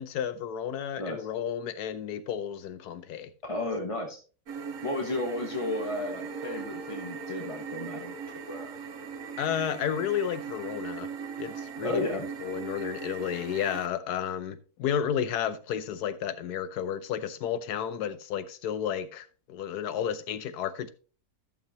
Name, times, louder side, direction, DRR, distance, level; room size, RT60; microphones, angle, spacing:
voice 1, 0.0-3.3 9.4-11.1 11.4-20.9, left 9 dB, 80° left, 1.3 m, -32 dB
voice 2, 3.5-4.2 4.8-8.7 11.8-12.2, left 2 dB, 25° left, 1.1 m, -33 dB
sound 1, 4.5-13.9, right 5 dB, 60° right, 1.2 m, -39 dB
14.5 x 6.6 x 2.8 m
omnidirectional pair, 1.7 m